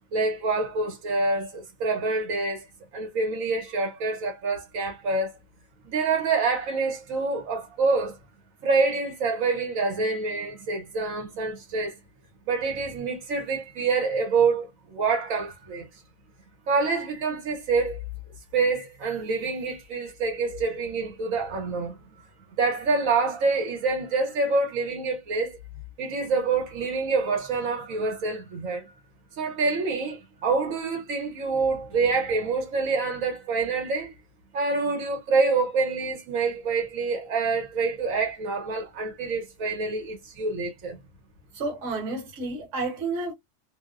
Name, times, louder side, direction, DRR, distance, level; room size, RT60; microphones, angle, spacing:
voice 1, 0.1-2.7 2.9-5.4 5.9-8.2 8.6-12.0 12.5-15.9 16.7-18.0 18.5-21.9 22.6-25.6 26.0-28.9 29.4-34.1 34.5-41.0, right 4 dB, 90° right, 1.2 m, -26 dB
voice 2, 41.5-43.3, right 3 dB, 70° right, 1.3 m, -30 dB
2.7 x 2.0 x 2.3 m
omnidirectional pair, 1.4 m